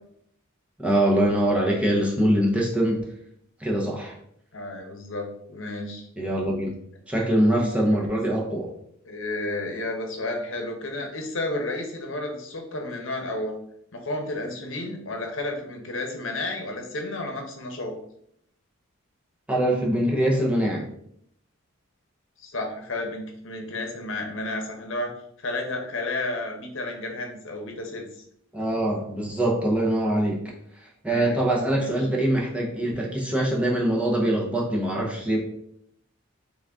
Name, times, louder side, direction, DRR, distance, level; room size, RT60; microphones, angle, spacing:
voice 1, 0.8-3.0 3.6-4.1 6.2-6.7 7.1-8.7 19.5-20.8 28.5-30.4 31.0-35.4, right 1 dB, 5° right, -3 dB, 0.7 m, -23 dB
voice 2, 4.5-6.1 7.9-8.0 9.1-13.5 13.9-17.9 22.4-25.1 25.4-28.1 31.1-31.4 31.8-31.9, left 2 dB, 65° left, 2 dB, 0.9 m, -32 dB
3.9 x 3.6 x 3.5 m, 0.71 s
head